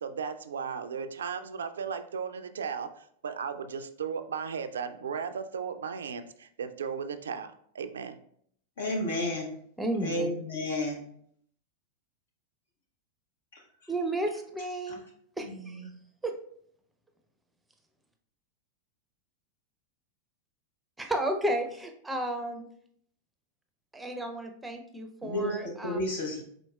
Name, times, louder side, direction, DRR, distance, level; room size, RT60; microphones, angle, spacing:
voice 1, 0.0-8.2, right 6 dB, 75° right, 10 dB, 0.3 m, -36 dB
voice 2, 8.8-9.5 10.0-11.0 25.2-25.6 25.8-26.4, left 1 dB, 70° left, 1 dB, 1.1 m, -31 dB
voice 3, 9.8-10.3 13.9-15.0 15.4-15.8 16.2-16.3 21.1-22.7 23.9-26.0, right 1 dB, 10° right, 5 dB, 0.6 m, -32 dB
4.5 x 3.9 x 2.3 m, 0.65 s
figure-of-eight pair, 90°, 0 cm